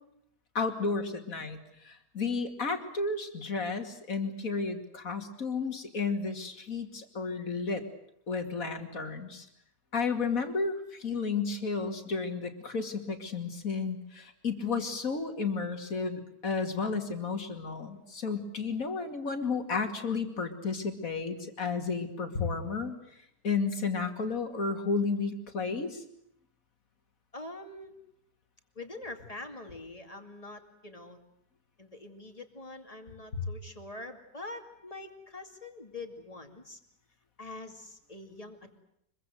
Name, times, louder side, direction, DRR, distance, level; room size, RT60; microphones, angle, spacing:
voice 1, 0.5-7.8 8.3-9.5 9.9-22.9 23.4-26.0 33.3-33.4, left 4 dB, 50° left, 6 dB, 2.8 m, -32 dB
voice 2, 27.3-27.9 28.7-31.2 31.8-36.8 37.4-38.8, left 2 dB, 20° left, 6 dB, 2.5 m, -44 dB
24.5 x 23.0 x 7.8 m, 0.74 s
omnidirectional pair, 1.9 m